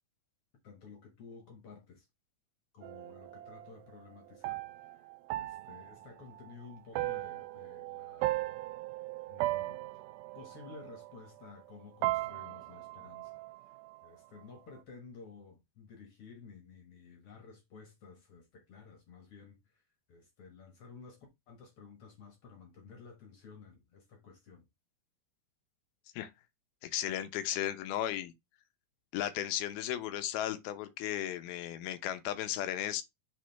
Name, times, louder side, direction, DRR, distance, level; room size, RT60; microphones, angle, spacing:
voice 1, 0.6-2.1 2.7-5.1 5.3-8.4 9.2-9.8 10.3-13.3 13.6-13.8 14.0-19.8 20.1-24.7, left 5 dB, 55° left, 1.7 m, -53 dB
sound 1, 2.8-11.7 12.0-14.1, right 18 dB, 85° right, 2.4 m, -38 dB
voice 2, 26.8-28.3 29.1-33.0, left 12 dB, 85° left, 2.7 m, -35 dB
8.2 x 3.9 x 3.3 m
omnidirectional pair, 4.2 m